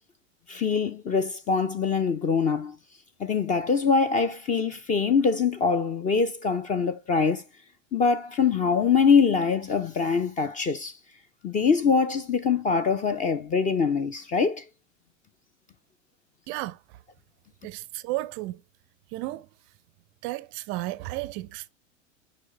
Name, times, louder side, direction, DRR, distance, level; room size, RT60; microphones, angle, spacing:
voice 1, 0.5-2.8 3.2-7.4 7.9-10.9 11.4-14.6, left 5 dB, 20° left, 0.6 m, -23 dB
voice 2, 16.5-16.8 17.6-18.6 19.1-19.5 20.2-21.7, right 18 dB, 35° right, 0.5 m, -33 dB
6.3 x 5.1 x 3.2 m
figure-of-eight pair, 95°, 38 cm